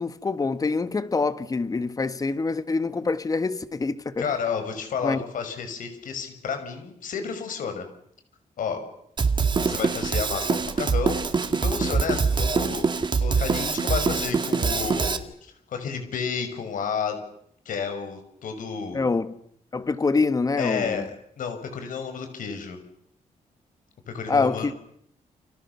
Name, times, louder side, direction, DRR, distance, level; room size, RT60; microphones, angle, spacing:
voice 1, 0.0-4.3 5.0-5.2 18.9-19.3 19.7-21.1 24.3-24.7, left 4 dB, 25° left, 1.5 m, -25 dB
voice 2, 4.2-7.9 8.6-8.8 9.7-12.9 13.2-17.2 17.7-19.0 20.5-21.0 21.4-22.8 24.1-24.7, left 6 dB, 80° left, 5.9 m, -31 dB
Drum kit, 9.2-15.2, right 4 dB, 35° right, 2.2 m, -24 dB
29.5 x 28.0 x 7.0 m
wide cardioid pair, 150°, 14 cm